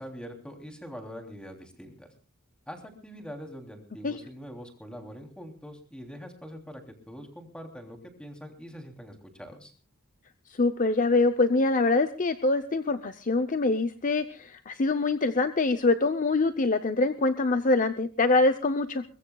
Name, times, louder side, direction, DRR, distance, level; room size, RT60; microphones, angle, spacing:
voice 1, 0.0-2.1 2.7-9.7, equal, 5° left, 3 dB, 3.1 m, -43 dB
voice 2, 10.6-19.0, left 3 dB, 35° left, 9 dB, 0.7 m, -24 dB
22.5 x 21.5 x 2.3 m, 0.35 s
head